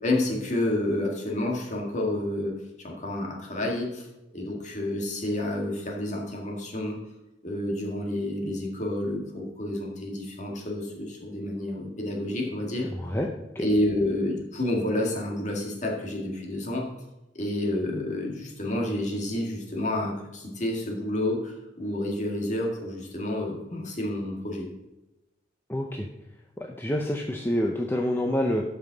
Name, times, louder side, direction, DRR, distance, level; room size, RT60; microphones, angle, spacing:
voice 1, 0.0-4.1 4.3-7.0 7.4-12.9 13.6-16.9 17.4-24.7, left 1 dB, 40° left, 0 dB, 2.0 m, -29 dB
voice 2, 12.9-13.3 13.6-13.7 25.7-26.1 26.6-28.6, left 1 dB, 10° left, 1 dB, 0.6 m, -27 dB
12.0 x 5.6 x 4.0 m, 0.99 s
head